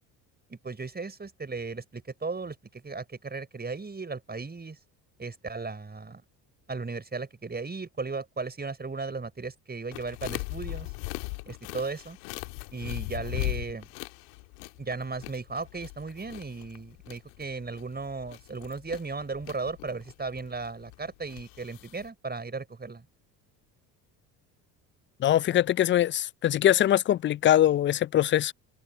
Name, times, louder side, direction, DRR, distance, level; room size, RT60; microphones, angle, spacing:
voice 1, 0.5-4.8 5.2-6.2 6.7-10.9 11.5-12.2 12.7-13.9 14.8-23.0, right 4 dB, 20° right, 6.0 m, -36 dB
sound 1, 9.9-22.1, left 34 dB, 70° left, 2.0 m, -39 dB
voice 2, 25.2-28.5, left 12 dB, 25° left, 0.4 m, -22 dB
hypercardioid pair, 65°, 48 cm